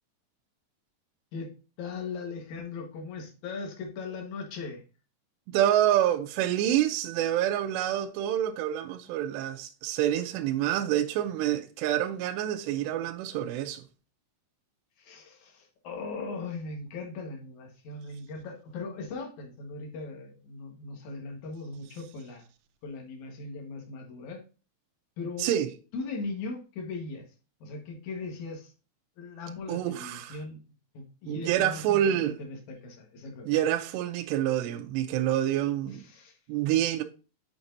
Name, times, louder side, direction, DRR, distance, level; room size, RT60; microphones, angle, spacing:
voice 1, 1.8-4.8 15.0-22.5 22.8-24.4 25.2-25.5 25.9-27.2 27.6-28.7 29.2-30.6 30.9-33.5 36.1-36.4, left 3 dB, 60° left, 2.2 m, -39 dB
voice 2, 5.5-13.8 25.4-25.7 29.7-30.4 31.3-32.4 33.4-36.0 36.5-37.0, right 11 dB, 80° right, 2.7 m, -27 dB
7.2 x 6.0 x 2.7 m
omnidirectional pair, 5.2 m